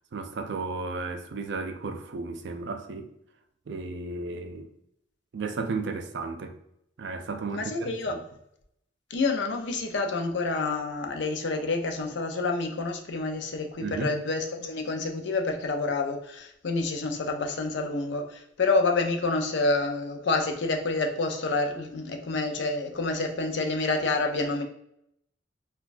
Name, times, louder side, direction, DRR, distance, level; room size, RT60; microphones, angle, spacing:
voice 1, 0.1-3.1 3.7-4.7 5.3-6.6 7.0-8.2 13.8-14.1, right 4 dB, 60° right, 0.4 m, -34 dB
voice 2, 7.5-8.2 9.1-24.6, left 3 dB, 60° left, 0.5 m, -28 dB
3.9 x 2.3 x 2.4 m
head